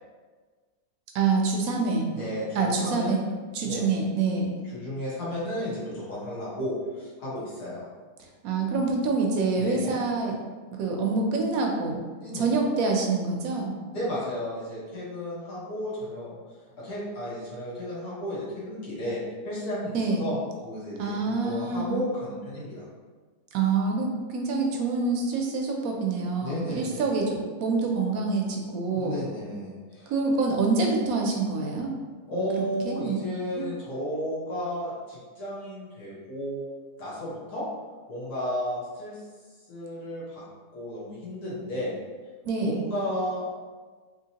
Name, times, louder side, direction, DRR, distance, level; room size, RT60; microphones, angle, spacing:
voice 1, 1.1-2.1 2.6-3.2 3.5-4.5 8.2-10.4 10.7-12.0 12.3-13.8 19.9-20.2 21.0-22.0 23.5-29.2 30.1-31.9 32.8-33.2 33.6-33.7 42.4-42.8, right 4 dB, 75° right, 1 dB, 1.0 m, -26 dB
voice 2, 2.1-3.2 3.6-3.9 4.6-7.8 9.6-10.0 12.2-12.5 13.9-16.4 16.8-19.2 19.4-20.4 20.6-22.8 26.4-27.1 28.9-30.1 32.3-36.6 37.0-37.6 38.1-39.2 39.7-40.4 40.7-42.0 42.6-43.5, equal, 80° left, -8 dB, 1.8 m, -33 dB
3.7 x 2.9 x 2.8 m, 1.4 s
omnidirectional pair, 1.6 m